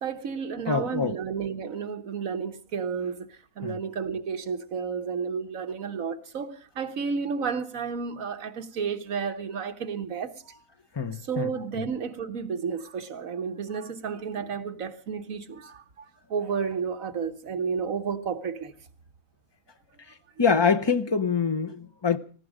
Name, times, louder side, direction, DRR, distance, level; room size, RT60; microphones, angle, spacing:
voice 1, 0.0-3.3 3.6-10.6 11.3-16.0 16.3-18.7, right 6 dB, 65° right, 1.6 m, -32 dB
voice 2, 0.7-1.2 3.6-3.8 10.9-11.9 20.1-22.2, left 5 dB, 25° left, 0.6 m, -25 dB
19.0 x 15.0 x 5.0 m
omnidirectional pair, 1.5 m